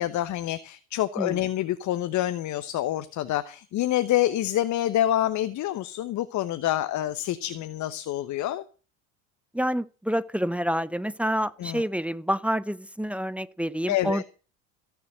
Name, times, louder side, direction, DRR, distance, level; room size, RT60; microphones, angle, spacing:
voice 1, 0.0-8.6 11.6-11.8 13.9-14.2, left 13 dB, 45° left, 1.0 m, -27 dB
voice 2, 9.5-14.2, equal, 5° right, 0.8 m, -28 dB
15.5 x 7.2 x 7.7 m
hypercardioid pair, 70°, 40 cm